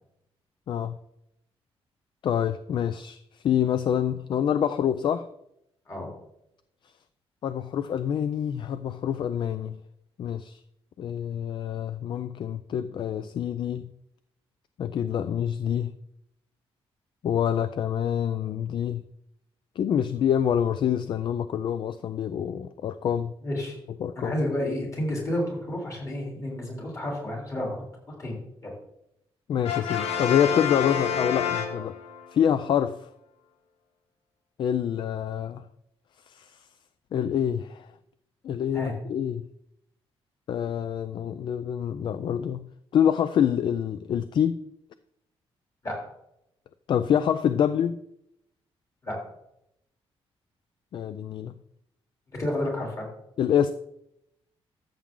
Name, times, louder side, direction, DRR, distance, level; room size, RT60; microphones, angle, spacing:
voice 1, 0.7-1.0 2.2-5.3 7.4-9.8 10.2-10.6 11.0-13.9 14.8-15.9 17.2-19.0 19.8-23.3 24.0-24.3 29.5-32.0 32.3-33.0 34.6-35.6 36.3-36.6 37.1-37.9 38.4-39.4 40.5-42.7 42.9-44.6 46.9-48.0 50.9-51.5 53.4-53.7, left 9 dB, 50° left, 0.4 m, -26 dB
voice 2, 23.4-23.8 24.1-27.8 28.1-28.4 28.6-28.7 38.7-38.9 45.8-45.9 49.0-49.2 52.4-53.1, left 1 dB, 30° left, 3.4 m, -30 dB
Brass instrument, 29.6-32.3, left 8 dB, 85° left, 1.7 m, -28 dB
13.5 x 7.2 x 3.7 m
wide cardioid pair, 170°, 10 cm